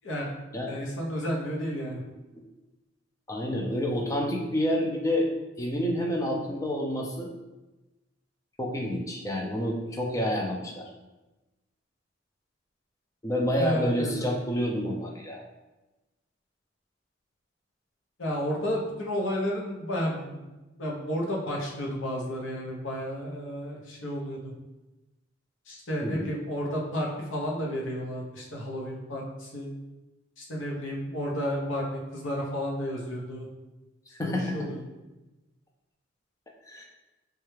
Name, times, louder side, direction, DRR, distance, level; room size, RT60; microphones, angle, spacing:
voice 1, 0.7-2.0 13.6-14.3 18.2-20.5 20.8-24.5 25.7-29.7 30.4-33.5 34.2-34.8, equal, 75° left, -2 dB, 0.7 m, -32 dB
voice 2, 3.3-5.3 5.6-7.3 8.6-10.9 13.2-15.4 26.0-26.3 34.2-34.6 36.7-36.8, equal, 15° left, 0 dB, 0.3 m, -28 dB
3.2 x 2.3 x 3.1 m, 1.1 s
head